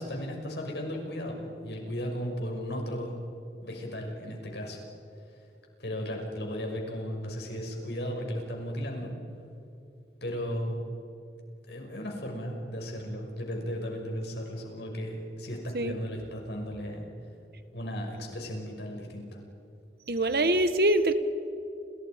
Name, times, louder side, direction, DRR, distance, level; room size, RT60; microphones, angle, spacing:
voice 1, 0.0-3.2 3.6-4.8 5.8-9.1 10.2-10.8 11.7-17.1 17.7-19.4, equal, 75° left, 1 dB, 6.2 m, -35 dB
voice 2, 20.1-21.1, right 1 dB, 60° right, 10 dB, 1.5 m, -24 dB
30.0 x 29.5 x 5.2 m, 2.7 s
head